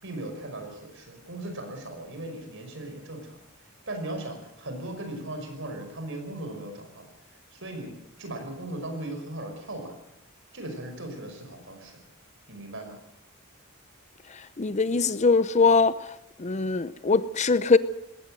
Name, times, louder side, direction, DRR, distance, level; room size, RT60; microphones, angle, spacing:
voice 1, 0.0-3.4 3.9-7.9 8.2-10.0 10.5-12.0 12.5-13.0, right 1 dB, 60° right, 5.6 m, -38 dB
voice 2, 14.6-16.1 16.4-17.8, left 4 dB, 35° left, 0.7 m, -22 dB
20.0 x 17.0 x 7.8 m
head